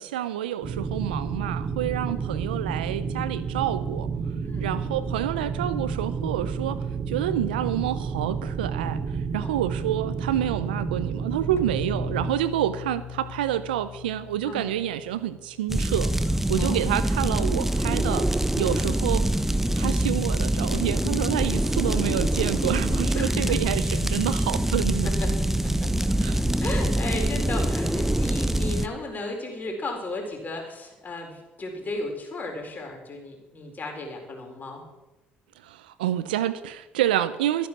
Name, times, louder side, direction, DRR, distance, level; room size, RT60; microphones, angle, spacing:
voice 1, 0.0-4.1 4.6-18.3 18.6-19.3 19.8-25.1 26.2-26.4 35.6-37.7, right 12 dB, 85° right, 14 dB, 0.6 m, -28 dB
sound 1, 0.6-12.3, right 5 dB, 45° right, 2.3 m, -30 dB
sound 2, 11.6-16.8, left 10 dB, 60° left, 1.4 m, -42 dB
sound 3, 15.7-28.9, right 1 dB, 5° right, 1.0 m, -24 dB
voice 2, 23.1-23.6 25.0-25.3 25.6-26.1 26.3-34.8, left 2 dB, 35° left, 2 dB, 4.6 m, -35 dB
14.0 x 10.5 x 6.1 m, 1.0 s
hypercardioid pair, 60°, 5 cm